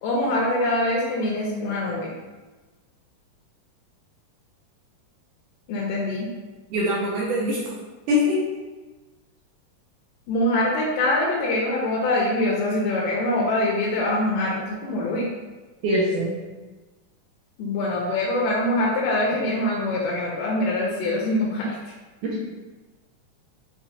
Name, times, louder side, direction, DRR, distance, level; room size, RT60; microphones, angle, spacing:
voice 1, 0.0-2.1 5.7-6.3 10.3-15.3 17.6-21.7, left 1 dB, 80° left, -4 dB, 2.2 m, -24 dB
voice 2, 6.7-7.6 8.1-8.4 15.8-16.4 22.2-22.4, left 1 dB, 80° right, -5 dB, 2.2 m, -23 dB
5.9 x 3.0 x 2.7 m, 1.2 s
omnidirectional pair, 3.8 m